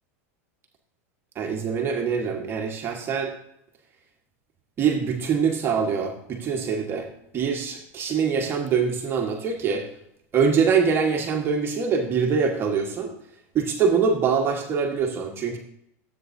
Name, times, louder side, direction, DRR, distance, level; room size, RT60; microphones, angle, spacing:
voice 1, 1.3-3.3 4.8-7.1 7.3-9.9 10.3-13.1 13.5-15.6, right 6 dB, 30° right, 2 dB, 1.4 m, -24 dB
13.0 x 8.1 x 2.7 m, 0.74 s
supercardioid pair, 135°, 8 cm